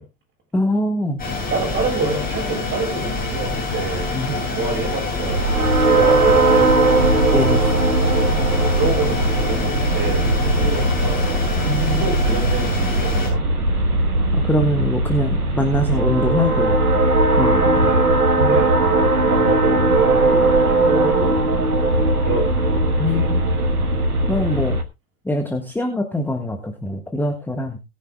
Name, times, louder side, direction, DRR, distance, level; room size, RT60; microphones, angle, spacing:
voice 1, 0.5-1.2 4.1-4.3 7.3-7.7 11.6-12.0 14.3-16.8 17.3-17.9 18.4-18.6 23.0-23.5 24.3-24.8 25.2-27.8, left 1 dB, 5° left, 5 dB, 1.4 m, -23 dB
sound 1, 1.2-13.3, left 3 dB, 20° left, 7.6 m, -26 dB
voice 2, 1.5-5.5 5.8-7.2 8.1-10.2 10.6-11.4 11.8-13.6 17.8-18.1 18.5-21.5 22.2-22.7 23.0-23.6, right 3 dB, 25° right, 0 dB, 7.6 m, -28 dB
sound 2, 5.3-24.8, right 2 dB, 85° right, 1.3 m, -18 dB
19.5 x 9.9 x 2.2 m, 0.25 s
figure-of-eight pair, 85°, 44 cm